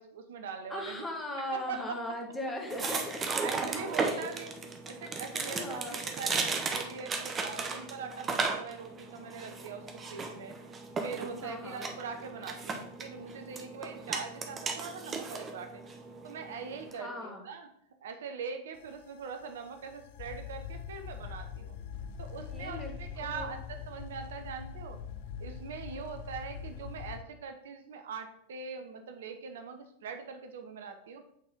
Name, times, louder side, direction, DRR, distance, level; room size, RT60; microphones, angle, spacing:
voice 1, 0.0-1.0 1.5-2.0 3.4-4.5 4.9-10.5 11.0-15.8 16.2-17.7 18.0-21.7 22.2-25.0 25.4-31.2, right 5 dB, 60° right, 7 dB, 0.7 m, -42 dB
voice 2, 0.7-3.2 3.9-4.3 5.4-6.0 11.4-11.9 16.9-17.5 22.4-22.9 23.3-23.6, left 1 dB, 10° left, 1 dB, 1.4 m, -39 dB
sound 1, 2.7-16.9, right 4 dB, 20° right, 0.9 m, -36 dB
sound 2, 18.8-27.2, left 7 dB, 50° left, 0.5 m, -43 dB
8.0 x 4.4 x 3.6 m, 0.72 s
figure-of-eight pair, 90°, 0 cm